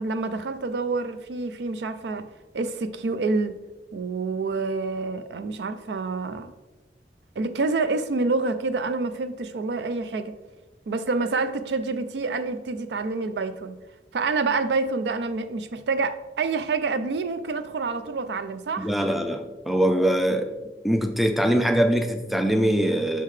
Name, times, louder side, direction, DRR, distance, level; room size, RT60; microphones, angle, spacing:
voice 1, 0.0-2.2 2.5-3.5 3.9-6.5 7.4-10.3 10.9-13.8 14.1-18.9, right 3 dB, 75° right, 10 dB, 0.4 m, -27 dB
voice 2, 18.8-20.5 20.8-23.2, equal, ahead, 5 dB, 0.4 m, -22 dB
5.7 x 5.4 x 3.2 m, 1.1 s
head